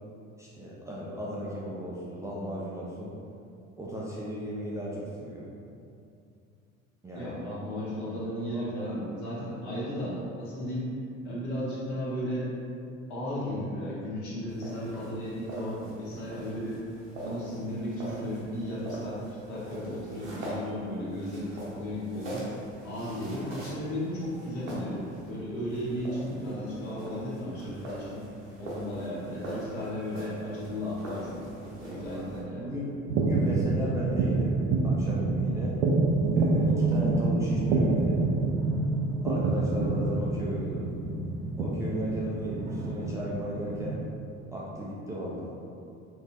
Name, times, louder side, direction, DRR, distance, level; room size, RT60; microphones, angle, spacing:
voice 1, 0.4-3.1 3.8-5.5 7.0-7.3 8.1-8.2 8.5-8.7 32.1-35.8 36.3-38.2 39.2-40.9 41.6-44.0 44.5-45.6, equal, 10° right, -7 dB, 0.4 m, -35 dB
voice 2, 7.1-10.9 11.2-12.5 13.1-16.8 17.2-22.5 22.8-28.2 28.6-32.7, equal, 60° left, -7 dB, 1.4 m, -35 dB
sound 1, 14.5-32.4, right 1 dB, 80° right, 1.0 m, -43 dB
sound 2, 33.1-43.9, right 3 dB, 60° right, 0.5 m, -27 dB
4.4 x 3.2 x 2.6 m, 2.5 s
figure-of-eight pair, 60°, 39 cm